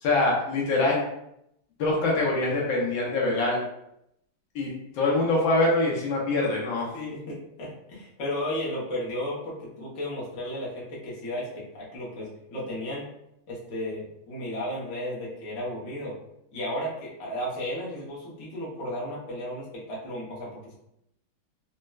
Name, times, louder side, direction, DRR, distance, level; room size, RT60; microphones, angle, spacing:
voice 1, 0.0-1.0 1.8-3.6 4.5-6.9, left 2 dB, 75° left, -3 dB, 1.4 m, -24 dB
voice 2, 6.9-13.0 13.5-16.2 16.5-20.7, left 1 dB, 50° left, -6 dB, 0.9 m, -34 dB
4.1 x 2.1 x 2.3 m, 0.80 s
omnidirectional pair, 2.2 m